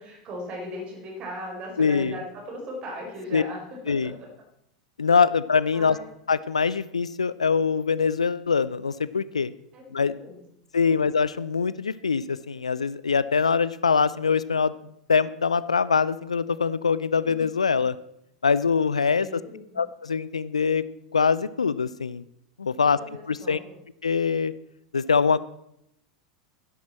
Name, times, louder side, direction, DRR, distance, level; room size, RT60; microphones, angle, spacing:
voice 1, 0.0-3.6 3.9-4.3 5.7-6.1 9.7-10.5 10.8-11.0 19.2-19.6 22.8-23.8, equal, 35° right, 0 dB, 4.6 m, -38 dB
voice 2, 1.8-2.1 3.3-3.4 3.9-4.1 5.0-6.0 6.3-9.5 9.9-10.1 10.7-14.7 15.1-18.0 18.4-19.4 19.8-20.8 21.1-22.2 22.6-23.0 23.3-23.6 24.0-24.5 24.9-25.4, left 5 dB, 80° left, 17 dB, 0.4 m, -23 dB
12.5 x 10.5 x 4.3 m, 0.77 s
figure-of-eight pair, 90°, 3 cm